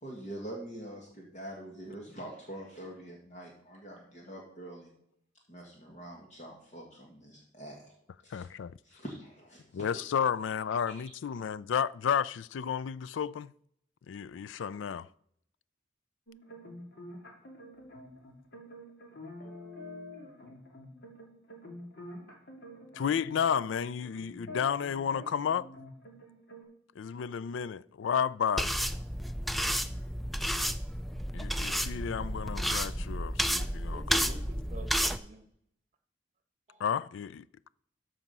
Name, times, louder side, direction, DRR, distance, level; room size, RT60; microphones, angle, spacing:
voice 1, 0.0-4.9 5.5-7.9 8.2-8.5 8.8-9.9, right 1 dB, 40° left, 1.7 m, -45 dB
voice 2, 8.3-8.8 9.7-13.5 14.1-15.1 22.9-25.7 27.0-28.8 31.3-34.3 36.8-37.5, left 7 dB, 80° left, 0.4 m, -32 dB
sound 1, 16.3-26.6, left 1 dB, 55° left, 2.5 m, -47 dB
sound 2, 28.6-35.2, equal, ahead, 0.3 m, -31 dB
voice 3, 33.6-35.4 36.7-36.8, right 1 dB, 40° right, 1.2 m, -48 dB
13.5 x 4.9 x 5.4 m
head